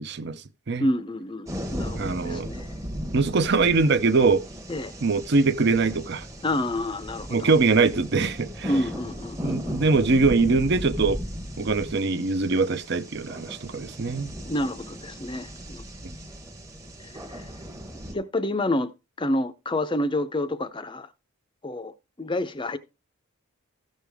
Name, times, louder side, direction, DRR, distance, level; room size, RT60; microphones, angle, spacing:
voice 1, 0.0-0.9 1.9-2.5 3.1-4.4 5.0-6.3 7.3-8.7 9.4-11.2 11.6-14.3, right 4 dB, 50° right, 0.6 m, -22 dB
voice 2, 0.8-2.7 4.7-4.9 6.4-7.5 8.7-9.8 14.5-15.8 17.0-17.5 18.1-18.9 19.2-21.1 21.6-22.8, left 1 dB, 20° left, 0.5 m, -29 dB
sound 1, 1.5-18.1, equal, 15° right, 0.9 m, -37 dB
14.5 x 6.4 x 3.4 m
head